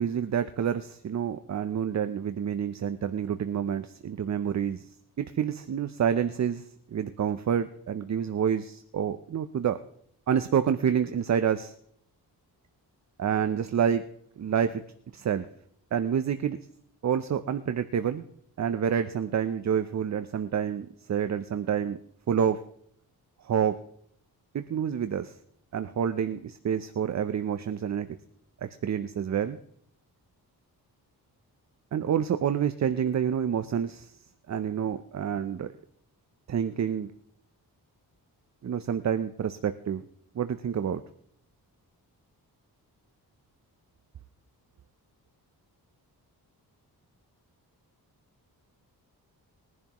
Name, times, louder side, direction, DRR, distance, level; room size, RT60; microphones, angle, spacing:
voice 1, 0.0-4.9 5.2-6.6 6.9-9.8 10.3-11.7 13.2-14.0 14.4-14.8 15.1-15.5 15.9-16.6 17.0-18.2 18.6-22.0 22.3-22.6 23.4-23.8 24.5-25.3 25.7-28.1 28.6-29.6 31.9-34.1 34.5-35.7 36.5-37.1 38.6-40.0 40.3-41.0, right 8 dB, 45° right, 11 dB, 0.6 m, -28 dB
21.5 x 11.0 x 3.0 m, 0.67 s
wide cardioid pair, 110°, 39 cm